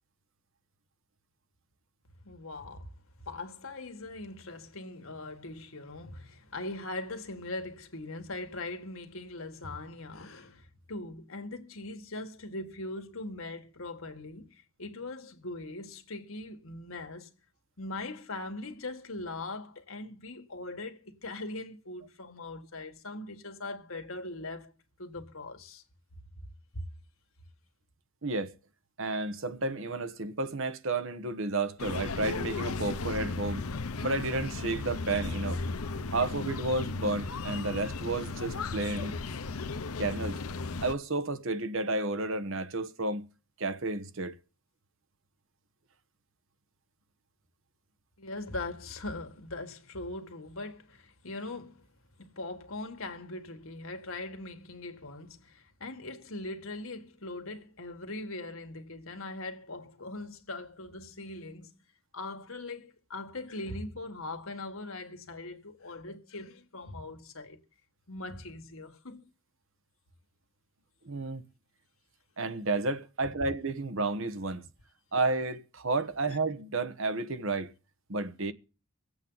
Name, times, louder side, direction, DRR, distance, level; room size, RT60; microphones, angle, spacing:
voice 1, 2.2-2.9 3.2-17.3 17.8-24.7 25.0-25.8 26.7-26.9 48.2-51.8 52.2-61.7 62.1-67.6 68.1-69.3 76.3-76.4, left 2 dB, 70° left, 1.8 m, -41 dB
voice 2, 28.2-28.6 29.0-33.7 34.0-35.6 36.1-39.2 40.0-40.4 40.8-43.3 43.6-44.4 71.0-71.4 72.4-74.7 75.1-77.7 78.1-78.5, right 2 dB, 65° right, 1.1 m, -31 dB
sound 1, 31.8-40.9, left 3 dB, 85° left, 0.8 m, -35 dB
24.5 x 8.3 x 4.0 m
head